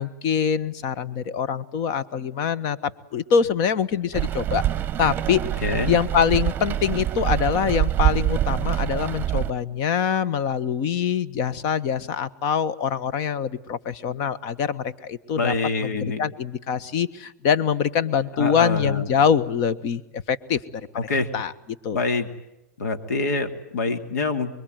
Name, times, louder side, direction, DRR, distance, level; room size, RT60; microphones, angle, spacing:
voice 1, 0.0-4.6 5.0-5.4 5.9-15.5 15.8-20.6 21.3-21.5 21.8-22.0, left 7 dB, 45° left, 16 dB, 1.4 m, -24 dB
Rain, 4.1-9.5, right 13 dB, 20° right, 1.1 m, -25 dB
voice 2, 5.6-5.9 15.4-16.2 18.4-19.1 20.9-21.3 21.9-22.3 22.8-24.5, left 3 dB, 85° left, 8 dB, 2.8 m, -25 dB
25.0 x 23.0 x 9.3 m, 0.90 s
hypercardioid pair, 130°, 9 cm